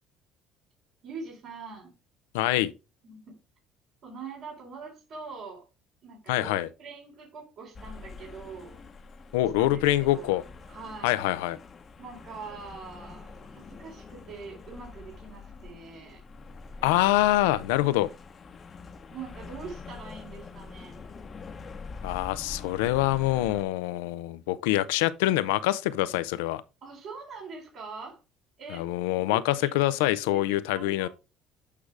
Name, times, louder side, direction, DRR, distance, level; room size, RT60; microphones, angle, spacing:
voice 1, 1.0-1.9 3.0-3.4 4.0-5.6 6.0-8.8 9.6-9.8 10.1-10.3 10.7-11.2 12.0-16.2 17.8-18.1 19.1-21.0 26.8-28.2 28.6-28.9 29.2-29.8 30.2-30.4 30.7-31.1, right 4 dB, 65° right, 3.8 m, -43 dB
voice 2, 2.3-2.7 6.3-6.7 9.3-10.4 11.0-11.6 16.8-18.1 22.0-26.6 28.7-31.1, left 15 dB, 90° left, 0.5 m, -25 dB
sound 1, 7.7-23.6, left 4 dB, 40° left, 0.9 m, -45 dB
8.5 x 4.8 x 3.3 m
supercardioid pair, 80°, 0 cm